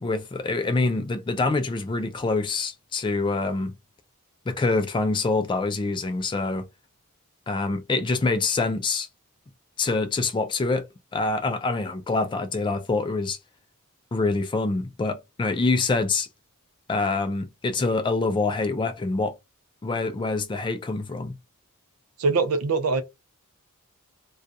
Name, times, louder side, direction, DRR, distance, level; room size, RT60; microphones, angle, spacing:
voice 1, 0.0-3.7 4.5-6.7 7.5-9.1 9.8-10.9 11.1-13.4 14.1-16.3 16.9-19.3 19.8-21.3, left 3 dB, 20° left, 0.3 m, -25 dB
voice 2, 22.2-23.0, right 4 dB, 75° right, 0.5 m, -22 dB
2.3 x 2.2 x 2.6 m
head